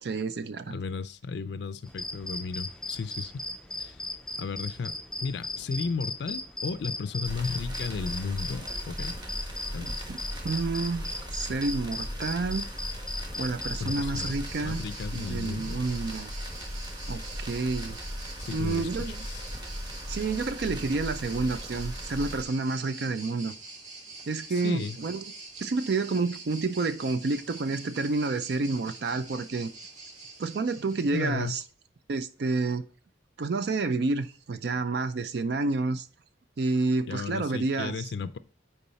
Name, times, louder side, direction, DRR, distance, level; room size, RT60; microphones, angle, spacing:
voice 1, 0.0-0.8 9.8-10.2 10.4-12.7 13.4-14.9 15.1-16.3 17.1-18.0 18.5-19.2 20.1-23.5 24.3-25.2 25.6-29.7 30.4-31.6 32.1-32.8 33.4-36.1 36.6-38.1, right 3 dB, 55° right, 0.4 m, -29 dB
voice 2, 0.7-3.4 3.8-4.0 4.4-5.0 5.2-9.1 9.7-10.0 13.8-15.8 18.4-19.6 24.5-25.0 31.1-31.6 37.1-38.4, left 4 dB, 60° left, 0.4 m, -34 dB
sound 1, 1.9-14.3, left 2 dB, 5° left, 0.5 m, -38 dB
sound 2, 7.2-22.4, equal, 20° right, 1.3 m, -37 dB
sound 3, 14.1-31.5, right 3 dB, 40° right, 1.6 m, -45 dB
8.6 x 4.7 x 4.1 m
head